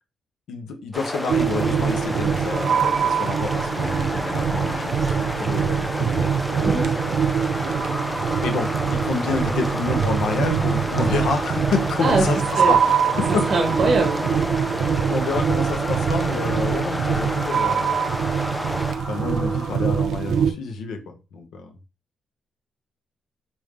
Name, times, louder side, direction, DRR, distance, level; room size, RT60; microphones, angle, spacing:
voice 1, 0.5-6.3 8.4-13.5 14.6-18.0 19.1-21.7, left 4 dB, 80° left, 0.7 m, -29 dB
sound 1, 0.9-18.9, equal, 5° left, 0.4 m, -31 dB
sound 2, 1.3-20.2, left 2 dB, 40° left, 0.9 m, -38 dB
sound 3, 1.3-20.5, right 7 dB, 65° right, 0.5 m, -23 dB
voice 2, 13.3-14.2, right 3 dB, 40° right, 1.0 m, -22 dB
3.4 x 2.6 x 3.2 m
cardioid pair, 130°, 0 cm